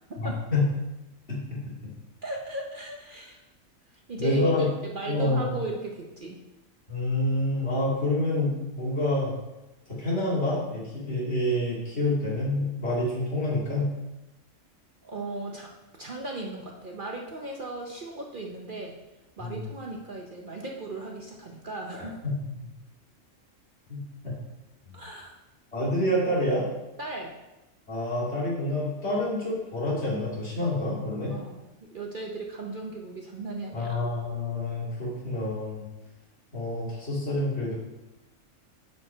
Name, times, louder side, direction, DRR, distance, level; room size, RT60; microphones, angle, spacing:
voice 1, 0.2-0.6 1.3-1.4 4.2-4.7 5.1-5.5 6.9-9.3 10.0-13.9 19.4-19.6 22.2-22.3 23.9-24.0 25.7-26.7 27.9-31.3 33.7-35.8 36.5-37.7, left 1 dB, 55° left, -7 dB, 2.9 m, -27 dB
voice 2, 2.2-3.4 4.1-4.5 4.8-6.4 15.0-15.7 16.0-19.0 19.4-22.1 24.9-25.4 27.0-27.4 29.1-29.2 31.3-34.0, right 2 dB, 45° right, 0 dB, 0.8 m, -37 dB
7.0 x 6.2 x 4.5 m, 0.99 s
omnidirectional pair, 1.4 m